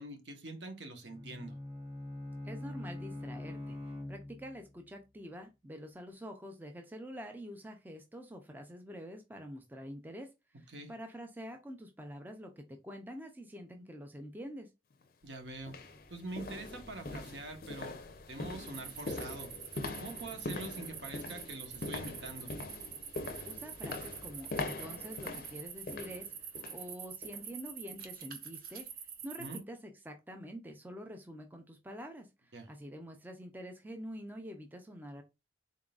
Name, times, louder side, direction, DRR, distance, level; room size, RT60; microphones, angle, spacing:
voice 1, 0.0-1.5 10.7-10.9 15.2-15.7 16.1-18.0 18.3-19.5 20.0-22.5 29.4-29.6 32.5-32.7, right 2 dB, 70° right, 1.0 m, -44 dB
Bowed string instrument, 1.0-4.7, left 1 dB, 30° right, 2.0 m, -43 dB
voice 2, 2.4-3.8 4.1-10.3 10.6-14.7 23.5-26.3 26.7-28.9 29.2-35.2, equal, 10° right, 0.4 m, -46 dB
sound 1, 14.9-15.0 15.6-26.9 27.2-27.5 27.9-28.0, left 2 dB, 50° left, 0.5 m, -43 dB
sound 2, 18.7-29.6, right 8 dB, 50° right, 0.7 m, -46 dB
3.9 x 3.7 x 2.3 m
head